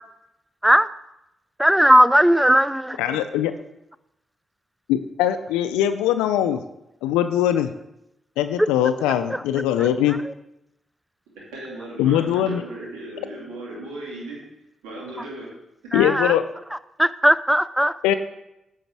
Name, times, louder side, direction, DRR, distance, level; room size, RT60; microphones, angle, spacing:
voice 1, 1.6-3.0 15.9-16.3 17.0-17.9, equal, 5° right, 16 dB, 0.4 m, -17 dB
voice 2, 3.0-3.5 4.9-6.6 7.0-7.7 8.4-10.2 12.0-12.6 15.9-16.4 18.0-18.1, left 11 dB, 90° left, 10 dB, 0.3 m, -21 dB
voice 3, 11.4-14.4 14.8-15.5, right 1 dB, 85° right, -4 dB, 2.6 m, -36 dB
8.9 x 5.0 x 4.6 m, 0.86 s
hypercardioid pair, 45°, 0 cm